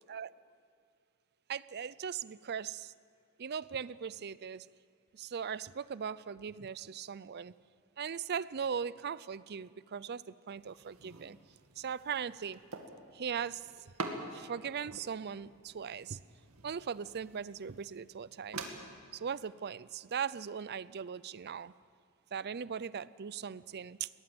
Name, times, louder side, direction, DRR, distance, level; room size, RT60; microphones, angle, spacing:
voice 1, 1.5-2.9 3.4-4.7 5.1-7.5 8.0-11.4 11.8-12.6 13.1-13.7 14.3-16.2 16.6-18.6 19.1-21.7 22.3-24.1, right 7 dB, 45° right, 18 dB, 0.5 m, -39 dB
sound 1, 10.5-18.7, right 3 dB, 70° right, 2.2 m, -47 dB
22.0 x 18.5 x 7.8 m, 2.4 s
head